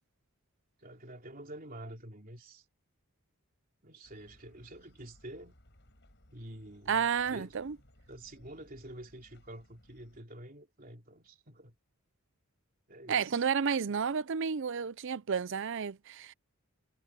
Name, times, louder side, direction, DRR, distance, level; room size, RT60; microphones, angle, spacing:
voice 1, 0.8-2.6 3.8-5.5 6.3-7.6 8.1-11.8 12.9-13.5, right 1 dB, 40° right, 3.2 m, -48 dB
sound 1, 4.0-10.2, left 1 dB, 55° left, 6.4 m, -62 dB
voice 2, 6.9-7.8 13.1-16.3, right 6 dB, 60° right, 0.5 m, -31 dB
head